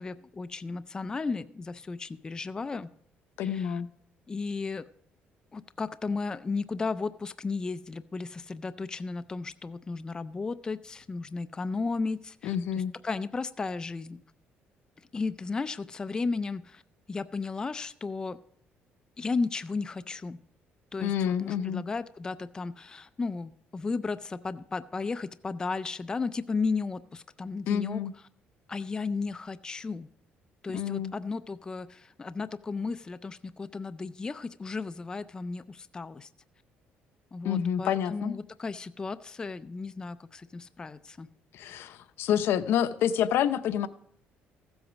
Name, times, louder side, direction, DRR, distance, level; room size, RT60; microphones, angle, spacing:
voice 1, 0.0-2.9 3.4-3.8 4.3-4.9 5.5-14.2 15.1-16.8 17.1-18.4 19.2-20.4 20.9-28.0 28.7-30.1 30.6-36.3 37.3-41.3, left 4 dB, 20° left, 12 dB, 0.4 m, -34 dB
voice 2, 3.4-3.9 12.4-12.9 21.0-21.8 27.7-28.1 30.7-31.1 37.4-38.3 41.5-43.9, left 9 dB, 75° left, 12 dB, 0.7 m, -28 dB
15.0 x 8.0 x 5.1 m, 0.66 s
cardioid pair, 125°, 4 cm